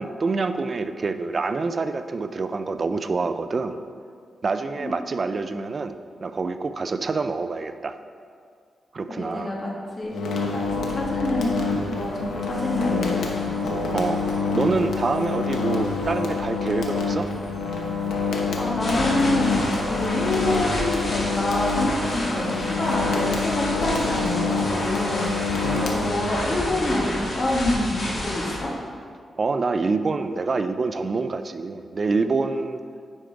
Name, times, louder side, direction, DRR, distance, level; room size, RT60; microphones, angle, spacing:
voice 1, 0.0-3.8 4.4-8.0 8.9-9.6 13.9-14.2 14.5-17.3 25.6-25.9 29.4-32.8, right 4 dB, 35° right, 10 dB, 0.3 m, -26 dB
voice 2, 4.8-5.2 9.1-10.1 10.5-13.5 18.4-28.7, left 1 dB, 30° left, -3 dB, 1.4 m, -27 dB
sound 1, 10.1-26.6, left 4 dB, 90° left, 0.9 m, -27 dB
sound 2, 10.6-27.2, equal, ahead, 1.0 m, -41 dB
sound 3, 18.8-28.6, left 1 dB, 45° left, 1.7 m, -30 dB
9.7 x 5.1 x 4.6 m, 2.2 s
wide cardioid pair, 170°, 0 cm